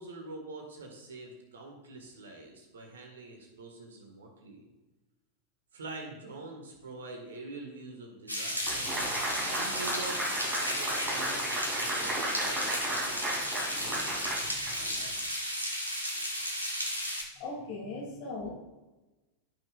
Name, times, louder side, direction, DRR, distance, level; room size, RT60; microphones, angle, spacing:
voice 1, 0.0-4.7 5.7-15.5 16.1-16.5 18.4-18.5, right 2 dB, 65° right, 3 dB, 1.8 m, -46 dB
sound 1, 8.3-17.2, equal, 85° right, 1.4 m, -34 dB
sound 2, 8.7-15.1, right 1 dB, 25° right, 2.8 m, -35 dB
voice 2, 17.4-18.5, left 3 dB, 45° left, -1 dB, 2.8 m, -38 dB
14.5 x 6.0 x 2.5 m, 1.1 s
figure-of-eight pair, 90°, 0 cm